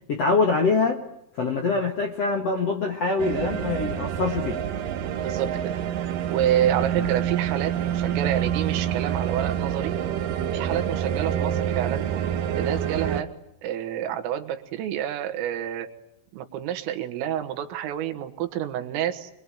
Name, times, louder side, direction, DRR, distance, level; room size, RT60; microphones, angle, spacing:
voice 1, 0.1-1.0 1.3-4.6 7.0-7.1, left 4 dB, 60° left, 4 dB, 1.7 m, -24 dB
sound 1, 3.2-13.2, right 9 dB, 70° right, 2.0 m, -27 dB
voice 2, 5.2-5.7 6.3-9.9 10.5-12.1 12.6-13.3 13.6-15.9 16.3-19.3, right 10 dB, 90° right, 7 dB, 4.3 m, -28 dB
26.5 x 21.5 x 10.0 m, 0.78 s
omnidirectional pair, 5.7 m